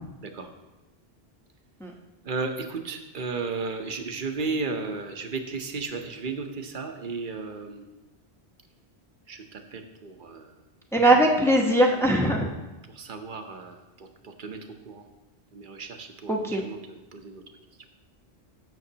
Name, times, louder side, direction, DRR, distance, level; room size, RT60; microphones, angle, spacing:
voice 1, 2.2-7.8 9.3-10.5 12.9-14.6 14.9-15.0 15.5-17.4, right 4 dB, 50° right, 5 dB, 1.0 m, -34 dB
voice 2, 10.9-12.5 16.3-16.6, right 1 dB, 5° left, 0 dB, 0.8 m, -20 dB
15.0 x 6.4 x 2.8 m, 1.0 s
omnidirectional pair, 1.1 m